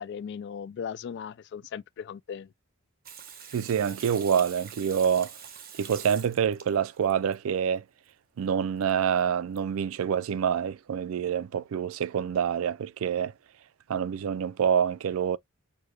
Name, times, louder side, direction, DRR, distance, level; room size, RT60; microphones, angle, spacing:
voice 1, 0.0-2.5, left 7 dB, 55° left, 0.3 m, -37 dB
Water tap faucet / Sink (filling or washing), 3.1-7.4 8.8-8.9 9.2-9.3 9.6-9.7, right 8 dB, 45° right, 1.0 m, -45 dB
voice 2, 3.5-5.3 5.8-7.8 8.4-13.3 13.9-15.4, right 8 dB, 85° right, 0.4 m, -26 dB
6.3 x 2.6 x 2.3 m
head